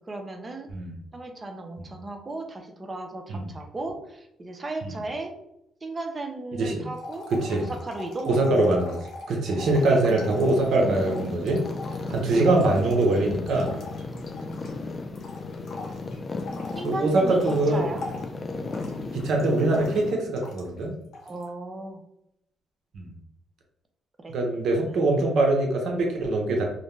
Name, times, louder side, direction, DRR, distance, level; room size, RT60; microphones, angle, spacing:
voice 1, 0.1-0.7 1.1-5.3 5.8-7.3 7.5-8.3 9.9-10.0 12.0-12.2 14.3-14.9 16.7-18.0 21.2-22.0 24.2-24.3 24.7-25.0, right 2 dB, 30° right, 4 dB, 0.5 m, -36 dB
voice 2, 6.5-6.9 7.4-7.7 8.3-9.0 9.3-11.6 12.1-13.7 16.8-17.9 19.1-20.9 22.9-23.1 24.3-26.6, right 2 dB, 70° right, 1 dB, 0.7 m, -23 dB
sound 1, 6.9-14.9 15.1-20.8 21.1-21.5, left 2 dB, 70° left, 0.7 m, -42 dB
sound 2, 9.7-20.1, left 3 dB, 35° left, 0.3 m, -35 dB
2.5 x 2.1 x 3.0 m, 0.79 s
cardioid pair, 90°, 0 cm